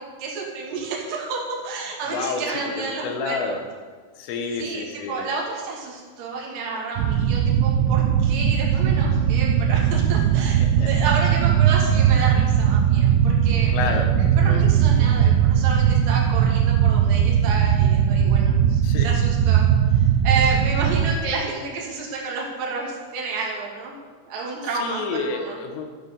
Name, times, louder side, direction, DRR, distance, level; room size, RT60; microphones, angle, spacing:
voice 1, 0.2-3.6 4.6-14.0 14.4-19.6 19.9-23.9 24.3-25.6, right 4 dB, 50° right, -3 dB, 3.8 m, -30 dB
voice 2, 2.1-3.6 4.2-5.3 10.6-11.1 13.7-14.6 18.8-19.1 24.7-26.0, left 4 dB, 75° left, 5 dB, 3.8 m, -30 dB
sound 1, 7.0-21.2, right 9 dB, 80° right, 2.9 m, -19 dB
11.5 x 10.0 x 7.0 m, 1.5 s
omnidirectional pair, 5.8 m